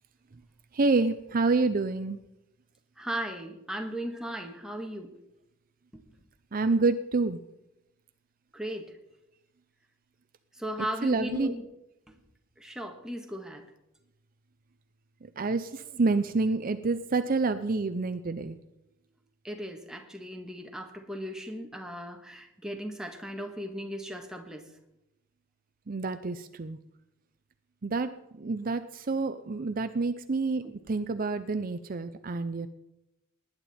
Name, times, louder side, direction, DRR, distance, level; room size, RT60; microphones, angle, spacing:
voice 1, 0.7-2.2 6.5-7.4 10.8-11.5 15.4-18.6 25.9-26.8 27.8-28.1 28.4-32.7, right 3 dB, 45° right, 10 dB, 0.6 m, -28 dB
voice 2, 3.0-5.1 5.9-6.0 8.5-8.9 10.6-11.6 12.1-12.2 12.6-13.6 19.4-24.7 30.6-30.7, equal, 5° right, 3 dB, 1.5 m, -37 dB
18.5 x 10.5 x 4.3 m, 0.88 s
head